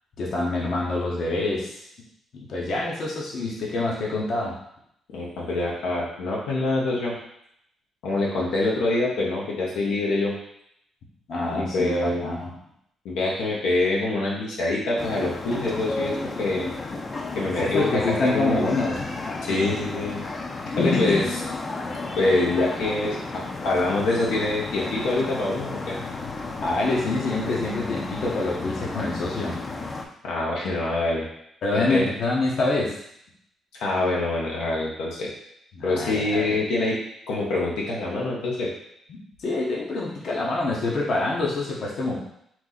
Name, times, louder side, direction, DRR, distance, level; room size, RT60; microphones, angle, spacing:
voice 1, 0.2-1.8 2.3-4.6 11.3-12.5 17.6-19.0 20.8-21.2 26.6-29.6 31.6-32.9 35.7-36.6 39.1-42.2, left 2 dB, 60° left, -3 dB, 1.0 m, -26 dB
voice 2, 5.1-7.2 8.0-10.3 11.4-12.2 13.0-16.7 17.3-18.6 19.4-20.2 20.7-21.2 22.2-26.0 30.2-31.3 31.7-32.1 33.7-35.3 35.8-37.0 37.3-38.7, left 2 dB, 90° left, -4 dB, 1.1 m, -25 dB
sound 1, 15.0-30.1, left 3 dB, 30° left, 0.6 m, -33 dB
4.5 x 2.7 x 4.0 m, 0.74 s
cardioid pair, 90°, 0 cm